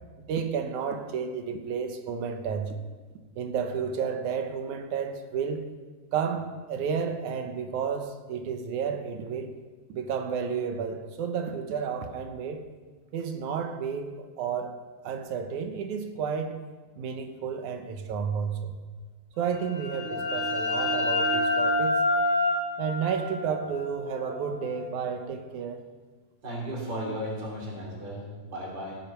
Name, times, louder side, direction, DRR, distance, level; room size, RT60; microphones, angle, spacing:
voice 1, 0.2-2.8 3.4-5.7 6.1-9.6 9.9-12.6 13.1-14.8 15.0-16.6 17.0-18.8 19.4-22.0 22.8-25.8, right 6 dB, 85° right, 6 dB, 2.6 m, -31 dB
sound 1, 19.5-25.0, left 2 dB, 15° left, 3.9 m, -28 dB
voice 2, 26.4-29.0, equal, 35° right, -2 dB, 3.6 m, -35 dB
16.5 x 9.2 x 5.6 m, 1.4 s
omnidirectional pair, 3.4 m